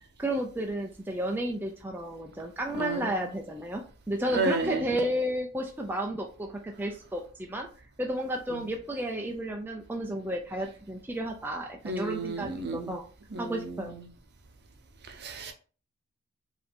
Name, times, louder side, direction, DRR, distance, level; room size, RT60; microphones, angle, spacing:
voice 1, 0.2-7.7 8.0-13.0 13.4-14.0, right 1 dB, 10° right, 0.4 m, -32 dB
voice 2, 2.7-3.3 4.3-5.0 8.5-8.6 11.8-12.9 13.3-14.0 15.2-15.5, right 3 dB, 45° right, 0.7 m, -32 dB
4.8 x 2.7 x 3.5 m
head